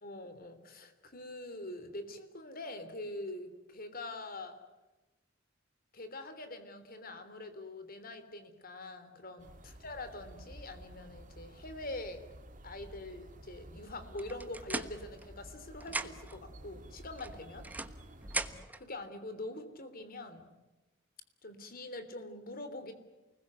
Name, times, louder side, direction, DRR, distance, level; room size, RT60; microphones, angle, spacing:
voice 1, 0.0-4.6 5.9-12.2 12.6-17.7 18.8-20.5 21.4-22.9, left 2 dB, 50° left, 10 dB, 3.3 m, -44 dB
sound 1, 9.4-18.6, right 1 dB, 45° right, 2.0 m, -52 dB
sound 2, 14.2-15.6 15.8-16.4 17.2-18.8, right 2 dB, 10° right, 1.2 m, -39 dB
29.0 x 20.5 x 9.6 m, 1.1 s
head